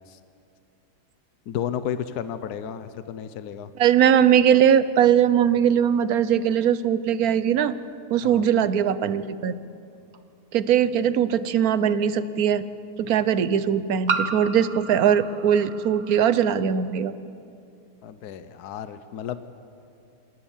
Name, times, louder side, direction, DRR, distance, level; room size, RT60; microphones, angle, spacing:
voice 1, 1.5-3.7 8.2-8.4 18.0-19.4, left 9 dB, 70° left, 12 dB, 1.3 m, -32 dB
voice 2, 3.8-7.7 8.1-9.5 10.5-12.6 13.0-17.1, right 9 dB, 65° right, 14 dB, 1.2 m, -20 dB
sound 1, 10.1-10.2 11.9-12.0 14.1-16.6, right 4 dB, 30° right, 1.0 m, -32 dB
26.5 x 19.5 x 7.3 m, 2.5 s
omnidirectional pair, 1.8 m